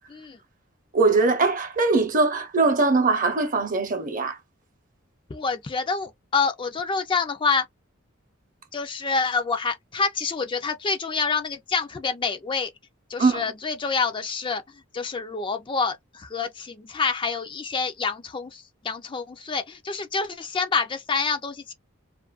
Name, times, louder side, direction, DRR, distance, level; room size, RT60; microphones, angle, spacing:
voice 1, 0.9-4.4 13.2-13.4, right 3 dB, 40° right, 0.7 m, -21 dB
voice 2, 5.3-7.7 8.7-12.7 13.1-14.6 14.9-21.7, left 4 dB, 25° left, 0.4 m, -27 dB
2.6 x 2.4 x 2.3 m
head